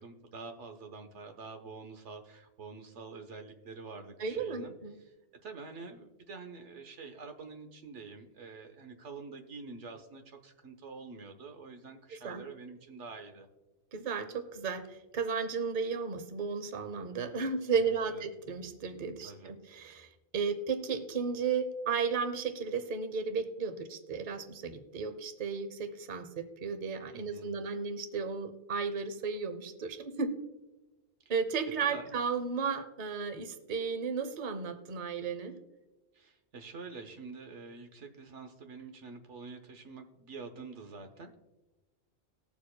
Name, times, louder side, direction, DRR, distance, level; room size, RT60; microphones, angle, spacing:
voice 1, 0.0-5.1 5.4-13.5 17.9-18.2 19.2-19.5 27.1-27.6 31.9-32.1 36.1-41.4, right 4 dB, 85° right, 6 dB, 1.4 m, -47 dB
voice 2, 4.2-5.0 12.1-12.4 13.9-30.3 31.3-35.6, right 5 dB, 45° right, 9 dB, 0.9 m, -34 dB
19.5 x 7.2 x 2.2 m, 1.1 s
omnidirectional pair, 1.2 m